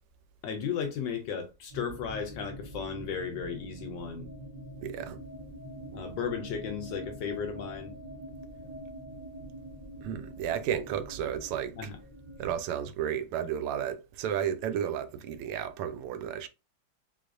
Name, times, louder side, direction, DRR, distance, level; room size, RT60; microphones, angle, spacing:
voice 1, 0.4-4.3 5.9-7.9 11.8-12.0, left 6 dB, 70° left, 1.1 m, -35 dB
sound 1, 1.7-12.5, right 1 dB, 70° right, 0.3 m, -44 dB
voice 2, 4.8-5.2 10.0-11.8 12.4-16.5, right 9 dB, 90° right, 1.5 m, -33 dB
3.8 x 3.1 x 2.5 m
omnidirectional pair, 2.4 m